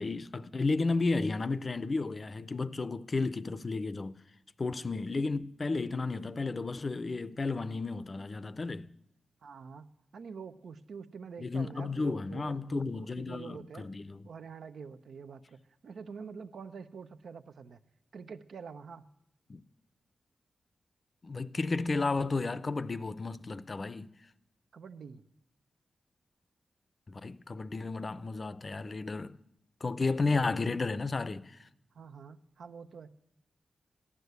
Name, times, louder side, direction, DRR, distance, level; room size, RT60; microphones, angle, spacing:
voice 1, 0.0-4.2 4.6-8.9 11.4-14.2 19.5-19.6 21.2-24.1 27.1-29.4 29.8-31.7, left 3 dB, 40° left, 0.6 m, -33 dB
voice 2, 9.4-13.9 14.2-15.6 15.8-17.8 18.1-19.1 24.7-25.2 30.3-30.4 31.9-33.1, right 5 dB, 85° right, 0.7 m, -46 dB
15.0 x 11.0 x 8.0 m
wide cardioid pair, 105°, 0 cm